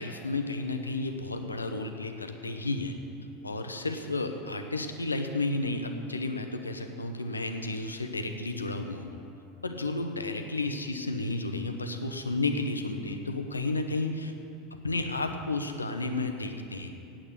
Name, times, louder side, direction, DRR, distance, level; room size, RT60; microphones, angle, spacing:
voice 1, 0.0-3.0 3.4-9.1 9.6-14.3 14.8-16.9, left 2 dB, 80° left, 6 dB, 0.8 m, -32 dB
8.7 x 8.7 x 8.3 m, 2.7 s
figure-of-eight pair, 80°, 0 cm